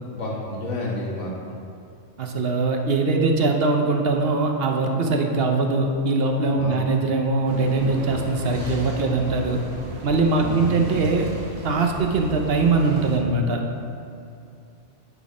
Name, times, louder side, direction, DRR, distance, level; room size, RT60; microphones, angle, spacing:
voice 1, 0.1-1.3 6.6-6.7 10.3-10.6, left 2 dB, 80° left, -4 dB, 1.8 m, -30 dB
voice 2, 2.2-9.6 10.0-11.3 11.6-13.6, right 3 dB, 60° right, 3 dB, 0.8 m, -22 dB
sound 1, 7.5-13.2, right 1 dB, 85° right, 1.6 m, -35 dB
9.0 x 4.1 x 4.8 m, 2.5 s
omnidirectional pair, 1.2 m